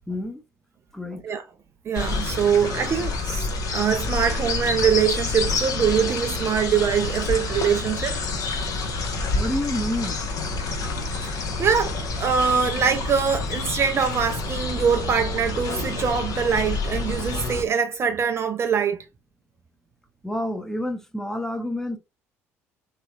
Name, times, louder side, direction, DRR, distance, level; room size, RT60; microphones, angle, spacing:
voice 1, 0.1-0.4 0.9-1.3 9.3-10.2 20.2-22.0, left 1 dB, 5° left, 0.8 m, -29 dB
sound 1, 1.9-17.6, left 3 dB, 50° left, 0.9 m, -28 dB
voice 2, 1.9-3.5 3.7-8.2 11.2-19.1, right 7 dB, 35° right, 0.4 m, -23 dB
3.2 x 2.9 x 2.4 m
figure-of-eight pair, 55°, 7 cm